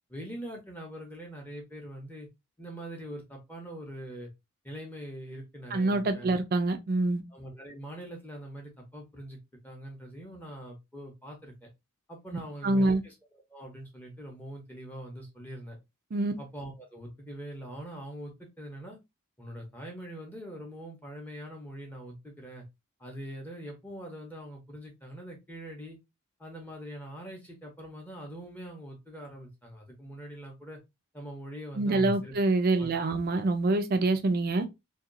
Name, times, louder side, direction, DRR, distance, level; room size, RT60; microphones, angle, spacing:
voice 1, 0.1-2.3 2.6-4.3 4.6-6.4 7.3-9.4 9.6-11.7 12.1-13.1 13.5-15.8 16.4-19.0 19.4-22.6 23.0-26.0 26.4-30.8 31.1-32.3 32.8-32.9, right 1 dB, 10° left, 0.7 m, -43 dB
voice 2, 5.7-7.2 12.6-13.0 16.1-16.3 31.8-34.7, right 2 dB, 45° right, 0.4 m, -26 dB
2.7 x 2.3 x 2.4 m
head